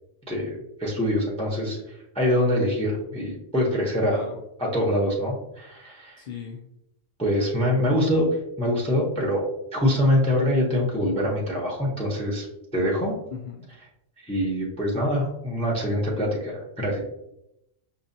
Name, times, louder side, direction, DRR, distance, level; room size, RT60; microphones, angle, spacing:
voice 1, 0.3-4.2 4.6-6.2 7.2-8.3 8.6-12.5 12.7-13.1 14.2-17.0, equal, 10° left, -2 dB, 0.4 m, -24 dB
voice 2, 6.2-6.6 13.3-13.6, left 6 dB, 70° left, -1 dB, 0.4 m, -37 dB
5.4 x 2.2 x 2.5 m, 0.83 s
omnidirectional pair, 1.4 m